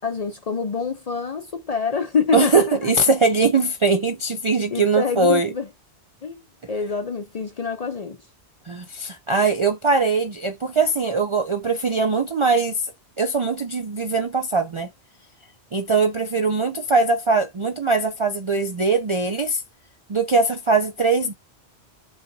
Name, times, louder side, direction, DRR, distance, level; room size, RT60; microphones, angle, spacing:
voice 1, 0.0-2.9 4.7-5.7 6.2-6.4 6.7-8.2, left 5 dB, 50° left, 0.5 m, -26 dB
voice 2, 2.3-5.5 8.7-12.9 13.2-14.9 15.7-19.6 20.1-21.3, right 3 dB, 50° right, 0.3 m, -21 dB
5.5 x 2.2 x 2.6 m
omnidirectional pair, 1.1 m